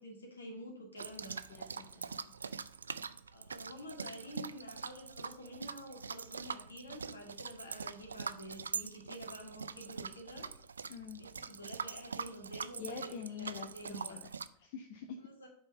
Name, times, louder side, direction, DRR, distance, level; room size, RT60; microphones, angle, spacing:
voice 1, 0.0-1.4 3.3-10.5 11.1-14.2 15.2-15.5, equal, 75° left, 2 dB, 2.1 m, -49 dB
sound 1, 1.0-14.5, right 5 dB, 75° right, 0.3 m, -43 dB
voice 2, 1.5-2.3 10.9-11.2 12.8-14.3 14.6-15.2, left 7 dB, 50° left, 5 dB, 0.8 m, -46 dB
7.9 x 4.3 x 5.4 m, 0.69 s
figure-of-eight pair, 90°, 0 cm